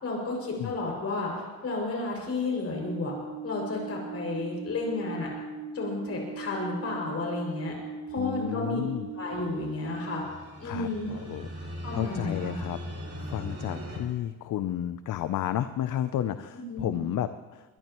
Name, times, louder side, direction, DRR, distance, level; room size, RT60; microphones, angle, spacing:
voice 1, 0.0-3.1 3.4-5.3 5.7-7.7 8.1-8.8 9.1-10.2 10.6-11.1 11.8-12.5 16.7-17.0, left 3 dB, 45° left, -1 dB, 6.2 m, -32 dB
sound 1, 2.8-10.2, right 3 dB, 55° right, 7.3 m, -39 dB
voice 2, 8.2-9.1 10.6-12.8 13.2-17.8, left 11 dB, 60° left, 11 dB, 0.6 m, -32 dB
sound 2, 9.5-14.0, equal, 40° right, 4.0 m, -40 dB
21.5 x 21.0 x 3.1 m, 1.3 s
cardioid pair, 145°, 35 cm